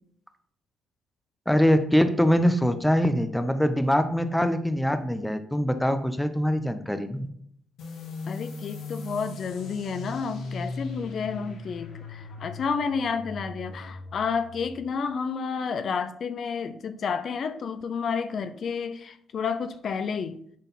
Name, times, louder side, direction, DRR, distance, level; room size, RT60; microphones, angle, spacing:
voice 1, 1.5-7.3, equal, 5° left, 10 dB, 0.7 m, -23 dB
sound 1, 7.8-15.0, left 2 dB, 80° left, 1.6 m, -39 dB
voice 2, 8.3-20.4, left 6 dB, 55° left, 11 dB, 0.6 m, -30 dB
10.5 x 4.0 x 4.1 m, 0.65 s
cardioid pair, 90°, 0 cm